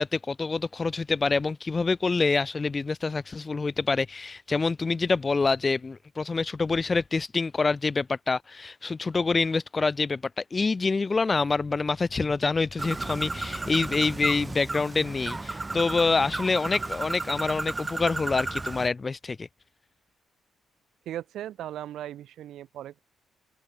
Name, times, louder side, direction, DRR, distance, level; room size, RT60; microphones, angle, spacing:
voice 1, 0.0-19.5, left 4 dB, 30° left, 1.1 m, -26 dB
Bird, 12.8-18.9, right 3 dB, 20° right, 3.3 m, -34 dB
voice 2, 21.1-23.0, right 12 dB, 75° right, 4.5 m, -37 dB
open air
cardioid pair, 90°, 0 cm